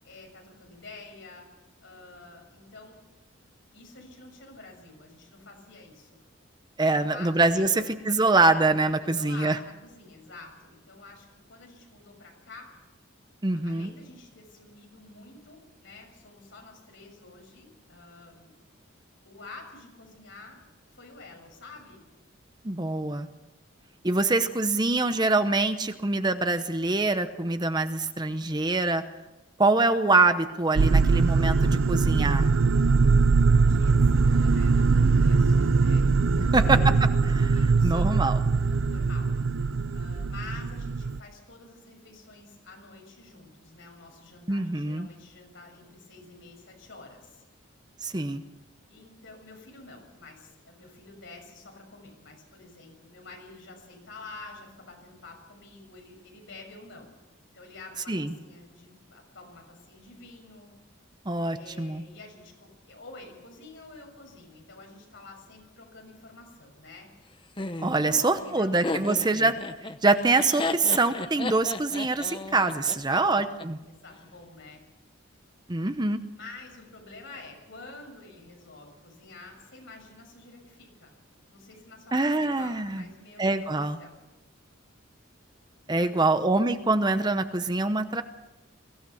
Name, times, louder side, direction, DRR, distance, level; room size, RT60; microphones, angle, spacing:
voice 1, 0.0-1.5 1.8-3.0 3.7-6.2 6.9-7.9 9.0-12.7 13.5-18.5 19.2-20.6 20.9-22.0 33.6-36.9 37.2-38.3 38.6-39.3 39.9-47.4 48.9-57.2 57.5-60.7 61.5-67.1 68.0-69.0 72.9-73.5 73.9-74.8 76.3-81.1 81.5-84.2 85.9-86.4, left 3 dB, 65° left, 1 dB, 6.7 m, -48 dB
voice 2, 6.8-9.6 13.4-13.9 22.6-23.3 24.0-29.0 29.6-32.5 36.4-38.4 44.5-45.1 48.0-48.4 58.1-58.3 61.3-62.0 67.8-69.6 70.0-73.8 75.7-76.2 82.1-83.0 83.4-84.0 85.9-88.2, right 3 dB, 20° right, 10 dB, 0.8 m, -24 dB
sound 1, 30.8-41.2, right 4 dB, 75° right, 0.6 m, -22 dB
Laughter, 67.6-73.6, left 2 dB, 25° left, 0.9 m, -34 dB
22.5 x 16.0 x 7.2 m, 1.1 s
head